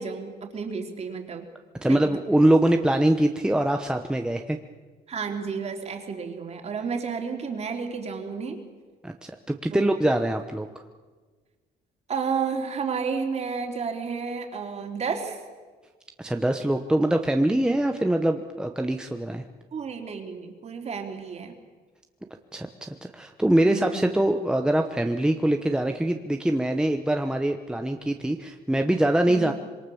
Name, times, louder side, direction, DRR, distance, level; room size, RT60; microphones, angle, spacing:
voice 1, 0.0-1.5 1.8-2.0 5.1-8.7 9.7-9.9 12.1-15.4 19.7-21.5 23.6-24.2 29.3-29.5, right 5 dB, 40° right, 4 dB, 3.4 m, -31 dB
voice 2, 1.8-4.6 9.0-10.8 16.2-19.4 22.5-29.5, right 1 dB, 5° right, 5 dB, 1.0 m, -23 dB
26.0 x 23.0 x 7.1 m, 1.4 s
cardioid pair, 150°, 17 cm